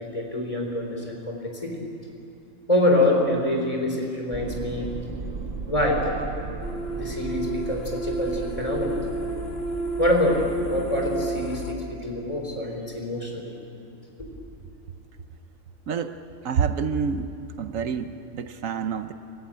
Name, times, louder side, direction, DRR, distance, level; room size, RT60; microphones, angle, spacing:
voice 1, 0.0-1.8 2.7-4.9 5.7-6.0 6.9-9.0 10.0-13.5, left 1 dB, 25° left, 1 dB, 3.8 m, -25 dB
sound 1, 4.3-11.1, right 4 dB, 55° right, 1.6 m, -36 dB
sound 2, 6.6-11.7, right 1 dB, 65° left, 2.0 m, -31 dB
voice 2, 16.4-17.3 17.6-19.1, right 6 dB, 75° right, 9 dB, 1.2 m, -27 dB
27.5 x 15.5 x 8.7 m, 2.6 s
omnidirectional pair, 1.4 m